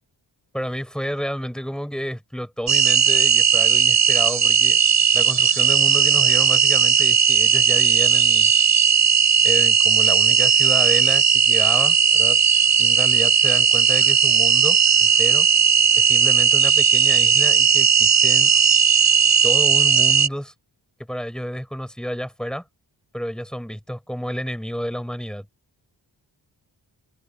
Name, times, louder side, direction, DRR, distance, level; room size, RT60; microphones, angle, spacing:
voice 1, 0.5-4.8 5.1-8.5 9.4-12.4 12.8-15.5 15.9-18.5 19.4-20.5 21.1-22.6 23.1-25.5, equal, ahead, 6.7 m, -30 dB
sound 1, 2.7-20.3, right 7 dB, 40° right, 0.7 m, -17 dB
wide cardioid pair, 95°, 44 cm